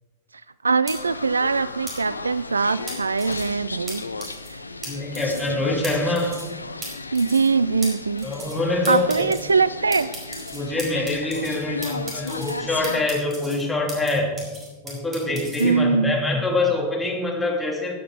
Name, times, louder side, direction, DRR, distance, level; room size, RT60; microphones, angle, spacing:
voice 1, 0.6-4.0 4.5-4.6 7.1-8.3 8.9-10.1 15.6-16.2, right 4 dB, 75° right, 17 dB, 0.3 m, -22 dB
sound 1, 0.9-13.0, left 3 dB, 80° left, 0.6 m, -35 dB
sound 2, 0.9-1.0 1.9-2.0 2.9-3.4 3.9-4.0 4.2-4.5 4.8-4.9 5.1-5.5 5.8-5.9 6.1-6.5 6.8-6.9 7.1-7.5 7.8-7.9 8.2-8.6 8.8-9.4 9.9-11.6 11.8-12.5 12.8-14.1 14.4-15.6, right 2 dB, 20° right, 4.5 m, -36 dB
voice 2, 4.9-6.4 8.2-9.3 10.5-14.3 14.8-17.9, left 2 dB, 10° left, -1 dB, 2.9 m, -25 dB
15.5 x 9.7 x 4.9 m, 1.3 s
figure-of-eight pair, 90°, 0 cm